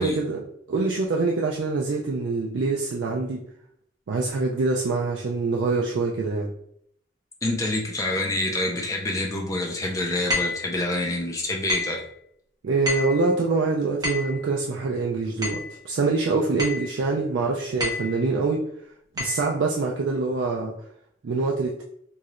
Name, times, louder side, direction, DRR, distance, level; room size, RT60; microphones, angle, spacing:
voice 1, 0.0-3.4 4.1-6.5 12.6-18.7 19.2-20.7 21.2-21.8, right 3 dB, 70° right, -1 dB, 0.4 m, -25 dB
voice 2, 7.4-12.0, left 2 dB, 15° left, -1 dB, 0.4 m, -27 dB
sound 1, 10.3-10.7 11.7-12.0 12.9-13.2 14.0-14.4 15.4-15.7 16.6-16.9 17.8-18.2 19.2-19.4, left 3 dB, 20° right, 1.0 m, -28 dB
3.0 x 2.8 x 2.5 m, 0.71 s
head